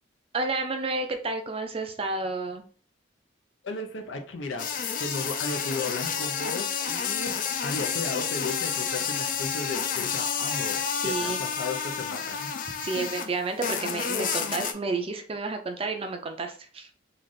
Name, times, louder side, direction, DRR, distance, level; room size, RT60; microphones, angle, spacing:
voice 1, 0.3-2.6 11.0-11.4 12.8-16.9, right 3 dB, 30° right, 5 dB, 0.5 m, -31 dB
voice 2, 3.6-4.7 5.0-7.4 7.6-12.5 12.9-13.1, left 3 dB, 85° left, 5 dB, 0.7 m, -35 dB
sound 1, 4.6-13.3 13.6-14.7, left 7 dB, 45° left, 0.4 m, -30 dB
3.3 x 2.4 x 3.9 m, 0.42 s
head